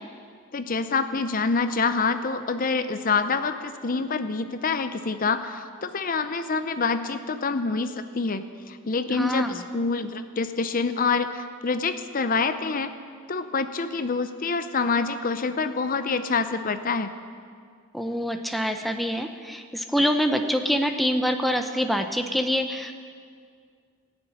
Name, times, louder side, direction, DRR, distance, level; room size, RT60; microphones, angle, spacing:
voice 1, 0.5-12.9 13.3-17.1, left 4 dB, 40° left, 10 dB, 0.6 m, -26 dB
voice 2, 9.1-9.6 17.9-22.9, equal, ahead, 5 dB, 0.6 m, -25 dB
17.5 x 7.1 x 9.7 m, 2.1 s
head